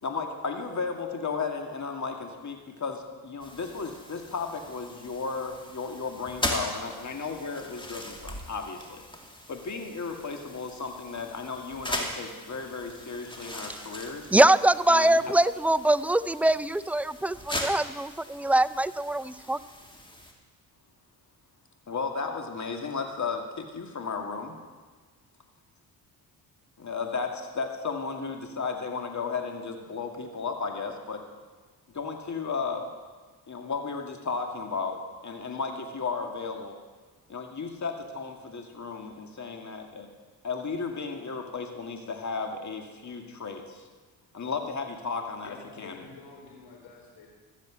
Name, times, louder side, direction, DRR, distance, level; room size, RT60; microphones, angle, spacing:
voice 1, 0.0-9.0 9.5-14.3 14.9-15.4 21.9-24.5 26.8-31.2 31.9-32.9 33.5-36.8 37.3-40.1 40.4-43.9 44.3-46.0, left 4 dB, 45° left, 3 dB, 2.2 m, -34 dB
sound 1, 3.4-20.3, left 1 dB, 10° left, 2.4 m, -39 dB
voice 2, 14.3-19.6, right 1 dB, 5° right, 15 dB, 0.3 m, -23 dB
voice 3, 45.4-47.3, left 4 dB, 80° left, 0 dB, 3.8 m, -49 dB
14.5 x 7.5 x 7.5 m, 1.4 s
supercardioid pair, 55°, 41 cm